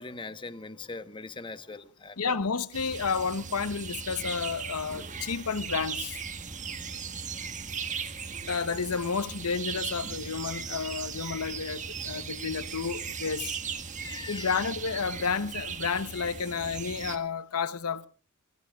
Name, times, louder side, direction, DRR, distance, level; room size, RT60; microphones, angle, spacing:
voice 1, 0.0-2.4 6.4-8.4 12.0-12.2 13.2-13.4 13.8-14.6, left 3 dB, 20° left, 1.1 m, -43 dB
voice 2, 2.2-6.2 8.5-13.6 14.3-18.1, left 5 dB, 80° left, 0.9 m, -31 dB
sound 1, 2.7-17.2, right 6 dB, 35° right, 1.6 m, -38 dB
28.0 x 20.0 x 2.4 m
head